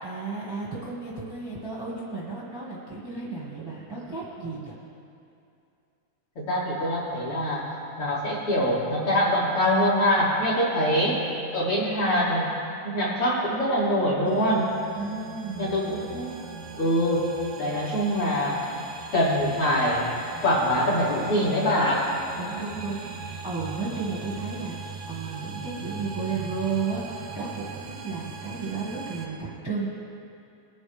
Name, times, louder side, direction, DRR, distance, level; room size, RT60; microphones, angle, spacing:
voice 1, 0.0-4.8 10.7-10.9 14.9-15.8 22.4-29.9, right 4 dB, 10° right, -7 dB, 1.2 m, -33 dB
voice 2, 6.4-7.6 8.0-11.2 11.5-12.5 12.8-14.7 15.6-16.4 16.8-17.3 17.6-18.7 19.1-20.1 20.4-22.1, equal, 45° left, -8 dB, 3.7 m, -24 dB
sound 1, 14.3-29.3, right 4 dB, 70° right, 1.2 m, -39 dB
21.0 x 9.3 x 3.6 m, 2.6 s
omnidirectional pair, 3.7 m